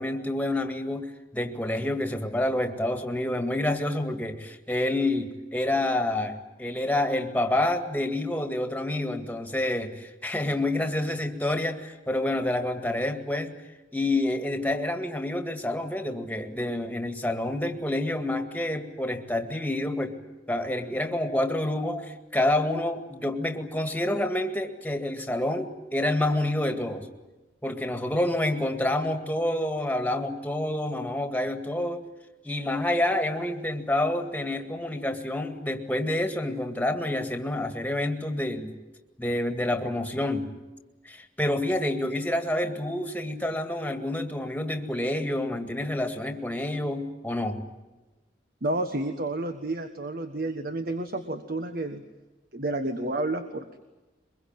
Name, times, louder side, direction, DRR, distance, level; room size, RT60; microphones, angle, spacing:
voice 1, 0.0-13.5 13.9-20.2 20.5-27.1 27.6-32.1 32.4-38.8 39.2-40.6 41.1-47.7, left 1 dB, 10° left, 6 dB, 2.0 m, -28 dB
voice 2, 48.6-52.0 52.5-53.8, right 2 dB, 50° right, 8 dB, 1.4 m, -30 dB
23.5 x 22.0 x 9.2 m, 1.1 s
head